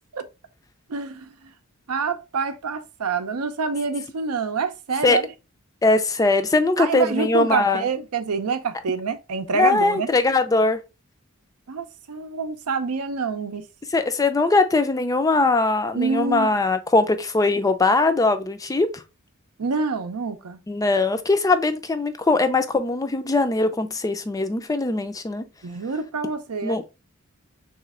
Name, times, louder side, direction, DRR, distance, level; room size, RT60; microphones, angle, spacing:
voice 1, 0.9-1.5 1.9-5.3 6.8-10.1 11.7-13.7 15.9-16.5 19.6-20.6 25.6-26.8, right 4 dB, 90° right, 0.6 m, -27 dB
voice 2, 5.8-7.9 9.5-10.8 13.9-19.0 20.7-25.5 26.6-26.8, left 3 dB, 15° left, 0.3 m, -21 dB
3.2 x 3.0 x 3.6 m
head